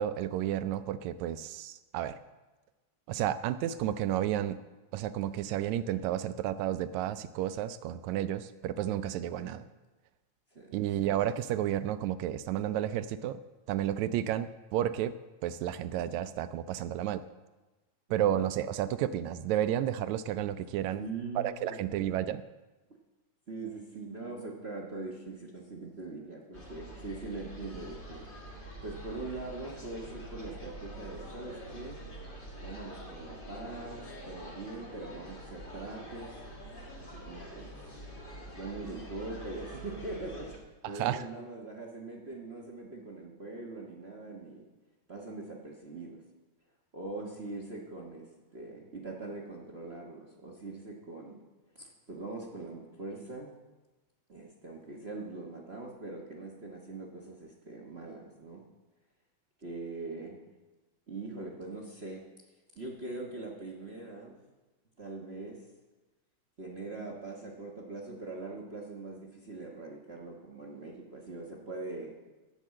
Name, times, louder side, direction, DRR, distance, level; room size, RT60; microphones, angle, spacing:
voice 1, 0.0-2.2 3.1-4.6 4.9-9.6 10.7-13.4 13.7-15.1 15.4-17.2 18.1-21.0 21.4-22.4 40.8-41.3, right 11 dB, 80° right, 12 dB, 1.8 m, -31 dB
voice 2, 20.9-22.1 23.5-28.3 28.8-32.0 32.6-36.4 37.0-37.7 38.4-40.5 40.9-44.7 45.1-46.2 46.9-48.3 48.5-51.4 51.7-53.5 54.3-58.6 59.6-60.4 61.1-62.2 62.7-64.4 65.0-65.6 66.6-72.1, right 3 dB, 45° right, -1 dB, 0.8 m, -42 dB
sound 1, 26.5-40.6, right 1 dB, 25° left, 1.2 m, -45 dB
17.5 x 6.2 x 7.6 m, 1.1 s
omnidirectional pair, 3.4 m